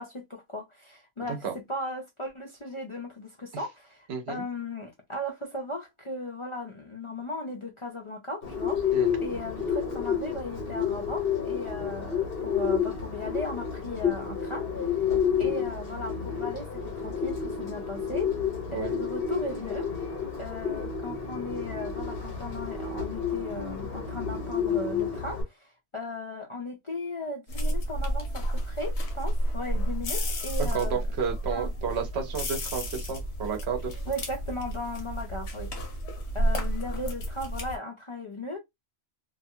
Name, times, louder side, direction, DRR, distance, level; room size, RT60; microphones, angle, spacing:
voice 1, 0.0-15.1 15.4-18.3 18.7-20.0 20.4-31.0 31.5-31.7 34.1-35.9 36.3-38.6, left 1 dB, 40° left, 0.4 m, -37 dB
voice 2, 4.1-4.4 8.9-9.1 15.4-15.5 18.7-18.9 30.7-33.9, right 6 dB, 70° right, 1.0 m, -32 dB
Bird, 8.4-25.4, left 7 dB, 60° left, 1.3 m, -30 dB
sound 1, 27.5-37.8, equal, 80° left, 1.1 m, -31 dB
2.7 x 2.3 x 2.6 m
omnidirectional pair, 1.1 m